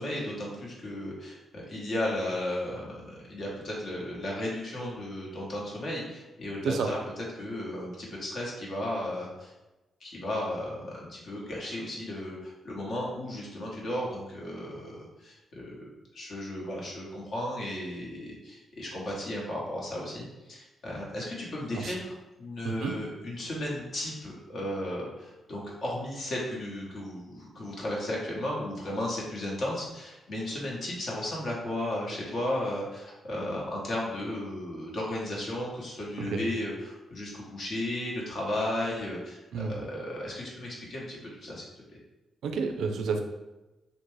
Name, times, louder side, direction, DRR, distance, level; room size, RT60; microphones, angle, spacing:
voice 1, 0.0-9.5 10.0-15.9 16.1-22.1 22.4-41.7, left 1 dB, 60° left, -4 dB, 0.9 m, -35 dB
voice 2, 22.6-23.0 36.2-36.4 39.5-39.7 42.4-43.2, right 5 dB, 70° right, 5 dB, 0.3 m, -30 dB
2.5 x 2.1 x 3.1 m, 1.0 s
hypercardioid pair, 40°, 0 cm